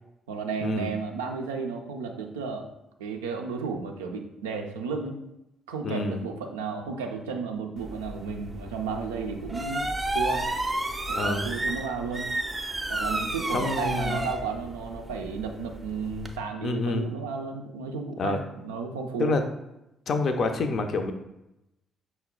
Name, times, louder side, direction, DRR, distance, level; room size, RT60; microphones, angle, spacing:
voice 1, 0.3-2.7 3.0-5.2 5.7-10.5 11.1-12.3 12.9-19.4, right 5 dB, 75° right, 3 dB, 0.4 m, -33 dB
voice 2, 5.8-6.2 11.2-11.5 13.5-14.2 16.6-17.1 18.2-18.4 19.2-19.4 20.1-21.1, left 3 dB, 50° left, 6 dB, 0.4 m, -27 dB
sound 1, 7.8-16.4, right 1 dB, 20° right, 0.5 m, -32 dB
5.7 x 2.1 x 3.7 m, 0.89 s
figure-of-eight pair, 40°, 0 cm